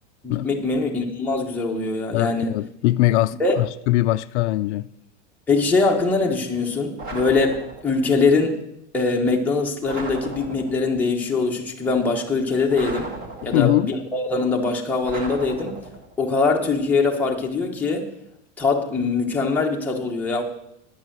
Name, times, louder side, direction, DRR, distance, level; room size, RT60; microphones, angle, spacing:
voice 1, 0.2-2.6 3.4-3.6 5.5-8.6 8.9-13.2 13.4-15.9 16.2-18.1 18.6-20.4, left 3 dB, 5° left, 1.0 m, -22 dB
voice 2, 2.1-4.9 13.4-13.9, left 17 dB, 75° left, 0.5 m, -21 dB
sound 1, 7.0-8.1 9.8-11.0 12.7-13.9 15.0-16.2, right 2 dB, 25° right, 1.7 m, -36 dB
10.0 x 8.3 x 7.4 m
supercardioid pair, 175°, 35 cm